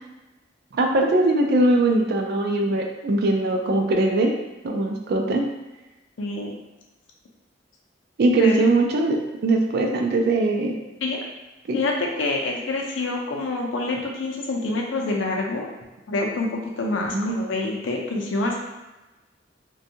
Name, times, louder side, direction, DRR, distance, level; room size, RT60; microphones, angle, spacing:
voice 1, 0.7-4.3 4.6-5.5 8.2-10.8 11.7-11.8 17.1-17.4, right 2 dB, 60° right, 3 dB, 0.4 m, -21 dB
voice 2, 6.2-6.5 8.4-8.5 11.0-11.2 11.7-15.7 16.1-18.6, left 2 dB, 80° left, 0 dB, 0.5 m, -26 dB
2.6 x 2.2 x 2.7 m, 1.1 s
head